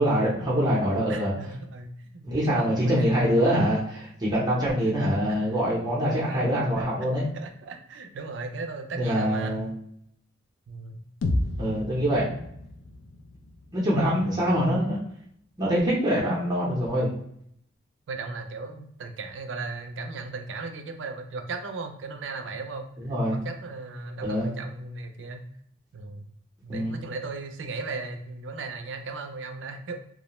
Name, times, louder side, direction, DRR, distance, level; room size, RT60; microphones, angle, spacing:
voice 1, 0.0-1.3 2.2-7.3 8.9-9.7 11.6-12.3 13.7-15.0 15.6-17.1 23.0-23.4 24.2-24.5 26.7-27.0, equal, 20° right, -7 dB, 0.6 m, -24 dB
voice 2, 1.1-3.2 5.1-5.5 6.2-6.4 6.7-6.9 7.3-9.6 10.7-11.0 14.1-14.3 18.1-25.4 25.9-26.3 26.6-30.0, right 3 dB, 70° right, 6 dB, 0.4 m, -37 dB
sound 1, 11.2-15.2, left 1 dB, 85° left, 0.4 m, -33 dB
2.3 x 2.1 x 2.9 m, 0.70 s
head